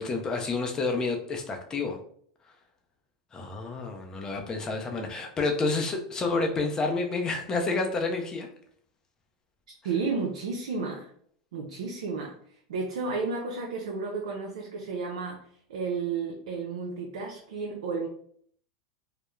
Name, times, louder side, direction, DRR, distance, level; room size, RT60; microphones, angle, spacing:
voice 1, 0.0-2.0 3.3-8.5, left 3 dB, 20° left, 3 dB, 0.5 m, -29 dB
voice 2, 9.8-11.1 11.5-15.4 15.7-18.1, right 4 dB, 85° right, 0 dB, 0.4 m, -32 dB
2.3 x 2.0 x 3.0 m, 0.62 s
supercardioid pair, 130°, 3 cm